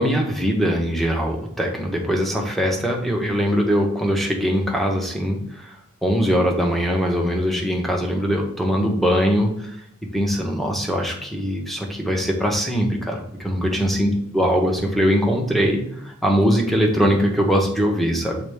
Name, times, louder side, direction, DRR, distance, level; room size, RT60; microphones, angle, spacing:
voice 1, 0.0-5.8 6.0-9.7 10.1-18.4, equal, ahead, 1 dB, 1.0 m, -21 dB
7.0 x 3.9 x 3.5 m, 0.73 s
head